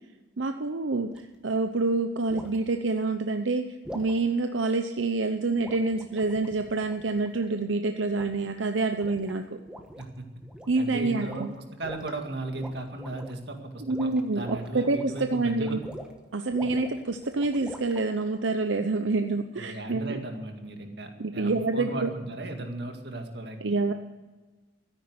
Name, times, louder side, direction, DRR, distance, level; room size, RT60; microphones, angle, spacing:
voice 1, 0.4-9.6 10.7-11.5 13.8-15.8 16.3-20.2 21.2-22.1 23.6-23.9, right 3 dB, 85° right, 7 dB, 0.8 m, -27 dB
sound 1, 1.1-1.3 2.3-2.6 3.8-4.2 5.6-7.4 8.1-8.6 8.9-9.3 9.7-10.1 10.4-10.9 11.2-12.1 12.5-13.4 13.8-16.2 16.5-18.0, equal, 5° right, 1.4 m, -44 dB
voice 2, 10.8-15.8 16.6-16.7 19.6-23.8, right 2 dB, 60° right, 4 dB, 2.1 m, -36 dB
13.5 x 9.9 x 8.0 m, 1.2 s
head